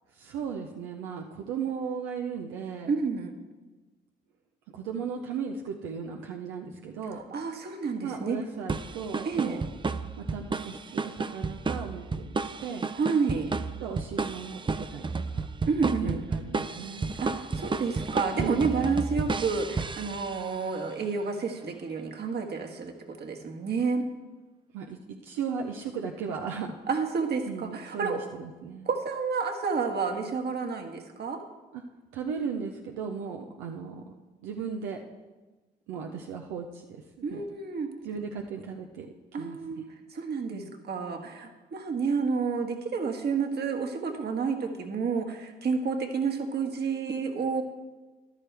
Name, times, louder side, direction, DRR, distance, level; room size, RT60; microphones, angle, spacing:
voice 1, 0.1-2.9 4.7-7.2 8.0-9.6 10.2-12.9 13.8-15.2 16.0-17.1 18.4-18.9 24.7-26.8 27.4-28.9 31.7-31.8 32.1-34.1 34.4-35.0 35.9-37.0 37.3-37.4 38.0-39.8 40.5-40.7, right 6 dB, 90° right, 2 dB, 0.7 m, -36 dB
voice 2, 2.9-3.3 7.1-8.4 9.2-9.6 12.9-13.5 15.7-16.2 17.2-24.1 26.9-28.2 28.8-31.4 37.2-37.9 39.3-39.8 40.1-47.6, right 5 dB, 60° right, 4 dB, 1.6 m, -30 dB
sound 1, 8.7-20.6, right 4 dB, 25° right, 0.6 m, -32 dB
14.0 x 11.0 x 3.4 m, 1.2 s
supercardioid pair, 50°, 19 cm